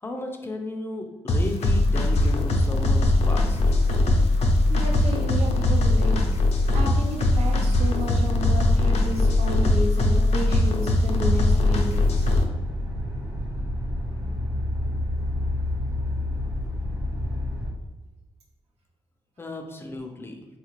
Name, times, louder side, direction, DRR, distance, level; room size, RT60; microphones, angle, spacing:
voice 1, 0.0-3.6 19.4-20.5, left 1 dB, 20° left, 3 dB, 0.4 m, -34 dB
sound 1, 1.3-12.4, left 2 dB, 85° left, 0.5 m, -21 dB
voice 2, 4.7-6.2 6.7-12.3, right 1 dB, 85° right, -2 dB, 0.9 m, -32 dB
sound 2, 11.2-17.7, left 1 dB, 35° right, 0.9 m, -29 dB
3.5 x 2.4 x 3.0 m, 1.1 s
wide cardioid pair, 140°, 11 cm